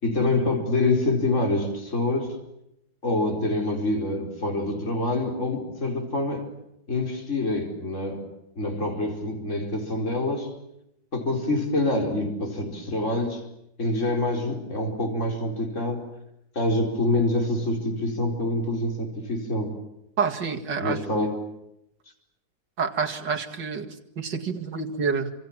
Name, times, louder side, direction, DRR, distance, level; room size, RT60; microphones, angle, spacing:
voice 1, 0.0-2.4 3.0-6.5 6.9-8.2 8.6-10.5 11.1-13.4 13.8-16.1 16.5-19.7 20.8-21.3, left 2 dB, 40° left, 2 dB, 4.8 m, -26 dB
voice 2, 20.2-21.0 22.8-25.3, right 5 dB, 70° right, 3 dB, 2.8 m, -28 dB
28.0 x 26.0 x 7.4 m, 0.81 s
omnidirectional pair, 2.0 m